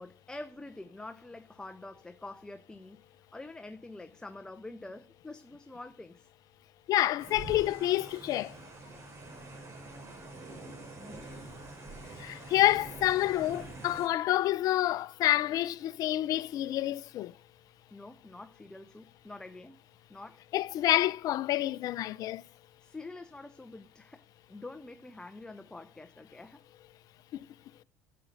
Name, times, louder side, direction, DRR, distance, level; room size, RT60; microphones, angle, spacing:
voice 1, 0.0-3.0 3.3-6.3 11.0-11.3 17.9-19.8 20.1-20.5 22.8-24.2 24.5-26.6, left 2 dB, 10° left, 0.9 m, -46 dB
voice 2, 6.9-8.6 12.2-17.3 20.5-22.4 27.3-27.5, left 14 dB, 60° left, 0.7 m, -28 dB
sound 1, 7.2-14.1, right 2 dB, 40° right, 5.9 m, -46 dB
11.5 x 8.2 x 7.9 m
hypercardioid pair, 80°, 7 cm